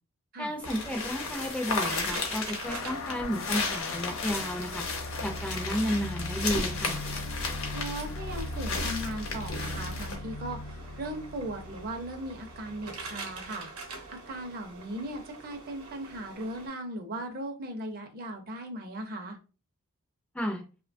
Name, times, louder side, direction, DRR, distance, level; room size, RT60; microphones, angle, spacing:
voice 1, 0.4-4.8 5.2-7.0 20.3-20.6, equal, 5° left, 2 dB, 0.3 m, -32 dB
sound 1, 0.6-10.2, left 3 dB, 65° left, 0.7 m, -34 dB
sound 2, 0.6-16.7, right 3 dB, 90° right, 0.7 m, -46 dB
sound 3, 2.6-13.6, left 2 dB, 85° left, 0.4 m, -39 dB
voice 2, 7.7-13.7 14.1-19.4, right 1 dB, 45° right, 5 dB, 0.5 m, -38 dB
2.8 x 2.1 x 2.5 m, 0.33 s
head